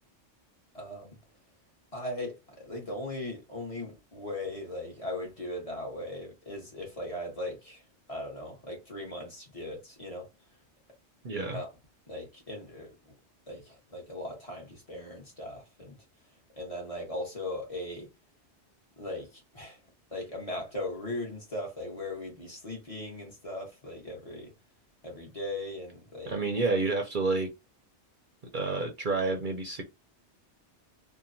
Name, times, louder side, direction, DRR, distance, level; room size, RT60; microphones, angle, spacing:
voice 1, 0.7-1.1 1.9-7.8 8.1-10.3 11.5-11.7 12.1-13.1 13.5-16.0 16.5-18.1 19.0-19.8 20.1-24.5 25.0-26.3, left 1 dB, 30° left, 1.1 m, -38 dB
voice 2, 11.2-11.6 26.3-27.5 28.5-29.8, right 3 dB, 55° right, 0.7 m, -29 dB
2.8 x 2.2 x 2.6 m
omnidirectional pair, 1.2 m